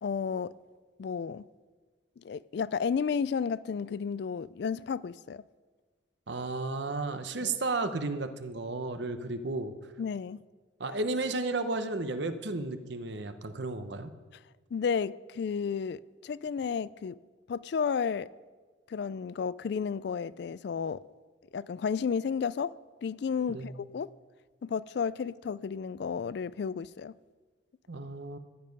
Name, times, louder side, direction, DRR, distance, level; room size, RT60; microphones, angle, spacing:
voice 1, 0.0-0.5 1.0-1.5 2.2-5.4 7.4-7.6 10.0-10.4 14.7-17.1 17.5-18.3 18.9-21.0 21.5-22.7 23.0-24.1 24.6-27.1, left 6 dB, 60° left, 0.3 m, -32 dB
voice 2, 6.3-9.7 10.8-14.1 23.5-23.8 27.9-28.4, right 3 dB, 65° right, 0.9 m, -33 dB
14.0 x 11.0 x 5.3 m
head